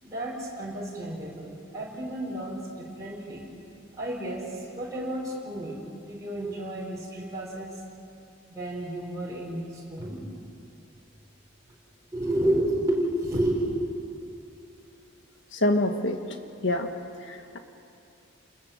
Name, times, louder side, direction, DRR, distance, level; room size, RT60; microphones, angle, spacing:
voice 1, 0.0-3.5 4.0-4.4 4.8-7.7 8.5-10.2 12.1-13.8, right 1 dB, 15° right, -6 dB, 4.9 m, -31 dB
voice 2, 15.5-16.2 16.6-16.9 17.2-17.6, left 1 dB, 60° left, 6 dB, 1.6 m, -26 dB
30.0 x 20.5 x 7.4 m, 2.6 s
head